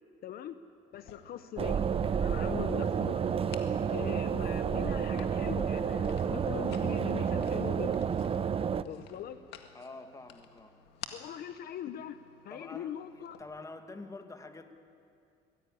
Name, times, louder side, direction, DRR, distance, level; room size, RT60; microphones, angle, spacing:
voice 1, 0.2-0.6 0.9-3.3 3.9-8.1 8.8-9.4 11.1-12.2 12.4-13.4, left 10 dB, 65° left, 11 dB, 0.9 m, -41 dB
sound 1, 0.9-13.4, left 9 dB, 85° left, 1.8 m, -54 dB
sound 2, 1.6-8.8, right 7 dB, 35° right, 0.7 m, -30 dB
voice 2, 9.7-10.8 12.5-14.7, left 3 dB, 20° left, 7 dB, 1.9 m, -47 dB
22.5 x 16.0 x 9.9 m, 2.5 s
cardioid pair, 110°, 17 cm